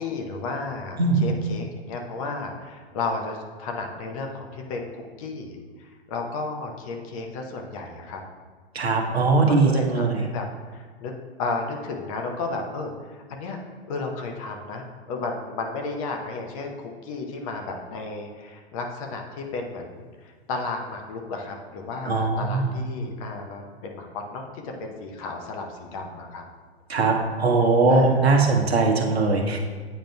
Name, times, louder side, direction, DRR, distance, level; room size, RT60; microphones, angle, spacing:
voice 1, 0.0-8.2 9.0-11.1 11.4-13.6 13.9-26.4 27.9-28.6, left 3 dB, 35° left, 2 dB, 0.8 m, -33 dB
voice 2, 8.7-10.2 22.0-22.7 26.9-29.6, right 3 dB, 75° right, 1 dB, 1.0 m, -20 dB
9.0 x 5.0 x 2.3 m, 1.6 s
figure-of-eight pair, 110°, 32 cm